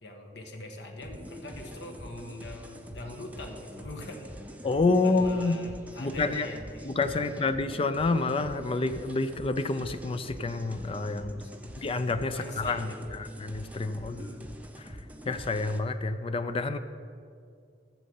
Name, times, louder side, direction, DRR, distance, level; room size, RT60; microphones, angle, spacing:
voice 1, 0.0-4.3 4.9-7.5 11.3-11.8 12.3-13.2 14.1-14.6, left 1 dB, 70° left, 3 dB, 1.5 m, -43 dB
sound 1, 1.0-15.8, equal, 10° right, 0.7 m, -45 dB
voice 2, 4.6-5.6 6.0-6.5 6.8-11.4 11.8-14.3 14.8-14.9 15.2-16.8, left 3 dB, 30° left, 10 dB, 0.4 m, -28 dB
12.5 x 7.5 x 5.5 m, 2.3 s
head